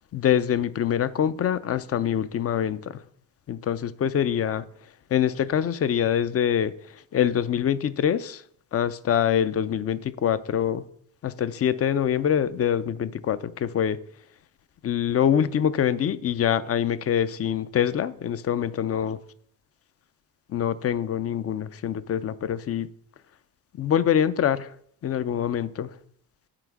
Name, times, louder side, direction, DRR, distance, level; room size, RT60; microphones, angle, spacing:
voice 1, 0.1-3.0 3.5-4.6 5.1-6.7 7.1-8.4 8.7-10.8 11.2-14.0 14.8-19.2 20.5-22.9 23.8-24.7 25.0-25.9, left 9 dB, 40° left, 0.5 m, -24 dB
9.0 x 5.8 x 4.7 m
cardioid pair, 110°, 37 cm